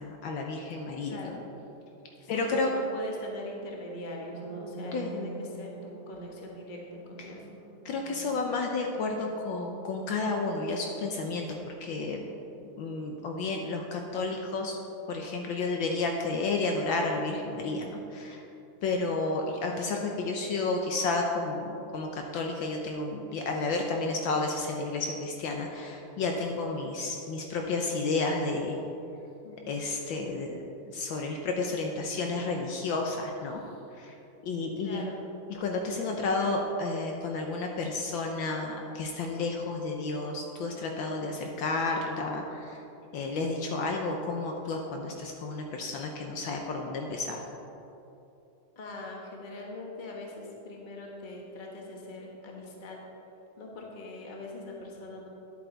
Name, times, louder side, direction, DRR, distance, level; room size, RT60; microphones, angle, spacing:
voice 1, 0.0-1.3 2.3-2.7 4.9-5.2 7.2-7.3 7.8-11.5 11.8-12.3 12.8-14.8 15.1-18.4 18.8-28.8 29.7-30.6 30.9-33.6 34.0-34.1 34.4-35.0 35.5-42.8 43.1-47.4, left 3 dB, 70° left, 2 dB, 1.3 m, -31 dB
voice 2, 1.0-1.4 2.2-5.7 6.1-6.8 7.1-7.5 29.4-29.6 33.5-33.8 34.8-35.2 48.8-53.0 53.6-55.3, left 2 dB, 30° left, -1 dB, 1.1 m, -42 dB
sound 1, 4.2-12.0, right 4 dB, 40° right, 1.2 m, -46 dB
10.5 x 8.2 x 3.9 m, 2.9 s
omnidirectional pair, 2.4 m